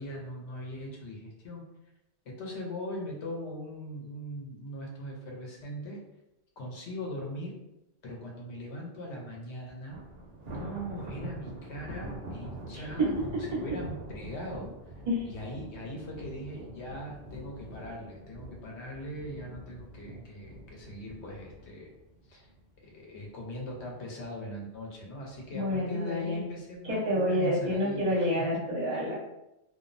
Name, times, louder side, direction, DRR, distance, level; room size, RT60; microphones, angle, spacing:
voice 1, 0.0-1.6 2.2-6.0 6.6-7.6 8.0-10.0 10.4-14.7 15.2-21.9 22.3-22.5 22.8-28.6, equal, 85° left, -1 dB, 1.0 m, -40 dB
Thunder, 9.9-23.2 23.5-23.8 24.2-24.3 25.2-25.8, right 1 dB, 70° right, 0.8 m, -44 dB
voice 2, 25.5-26.5 26.9-29.1, equal, 45° right, -7 dB, 1.0 m, -28 dB
2.4 x 2.0 x 2.5 m, 0.90 s
omnidirectional pair, 1.1 m